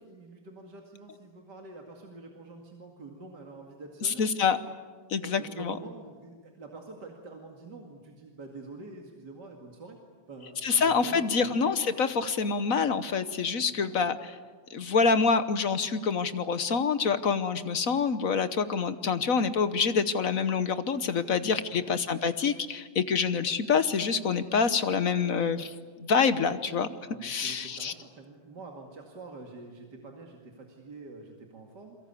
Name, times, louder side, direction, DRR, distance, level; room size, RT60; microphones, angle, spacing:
voice 1, 0.0-4.2 5.2-10.0 10.3-11.5 13.7-13.9 21.3-22.0 26.9-32.0, right 3 dB, 55° right, 1 dB, 2.8 m, -46 dB
voice 2, 4.0-4.6 5.1-5.7 10.6-14.3 14.7-25.7 26.0-26.9 27.2-27.9, left 5 dB, 50° left, 12 dB, 1.2 m, -26 dB
29.0 x 23.0 x 8.4 m, 1.5 s
omnidirectional pair, 2.3 m